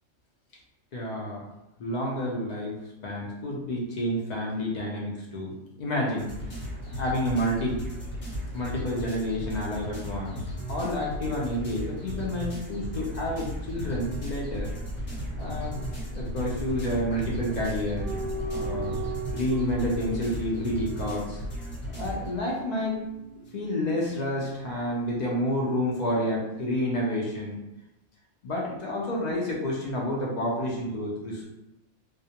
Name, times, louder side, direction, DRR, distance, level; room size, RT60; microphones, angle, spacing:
voice 1, 0.9-1.5 1.8-2.7 3.0-6.3 7.0-7.8 8.5-10.4 10.7-14.7 15.4-15.8 16.1-18.1 18.5-18.9 19.3-21.4 21.9-23.0 23.5-27.6 28.4-31.4, left 1 dB, 85° left, -3 dB, 0.3 m, -29 dB
sound 1, 6.2-22.3, equal, 50° left, 1.0 m, -35 dB
sound 2, 18.0-24.7 25.0-25.3, right 3 dB, 50° right, 0.7 m, -39 dB
2.3 x 2.1 x 2.7 m, 0.93 s
omnidirectional pair, 1.3 m